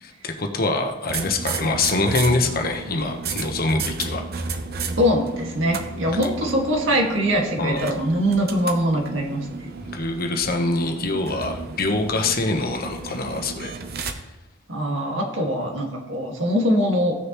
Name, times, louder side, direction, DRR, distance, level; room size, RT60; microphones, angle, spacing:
voice 1, 0.0-4.2 6.2-6.3 7.6-7.9 9.9-13.7, left 2 dB, 50° left, 4 dB, 1.1 m, -24 dB
sound 1, 1.1-14.1, right 4 dB, 50° right, 0.8 m, -33 dB
voice 2, 5.0-9.5 14.7-17.2, equal, 65° right, 0 dB, 2.0 m, -22 dB
16.0 x 6.6 x 3.1 m, 1.0 s
head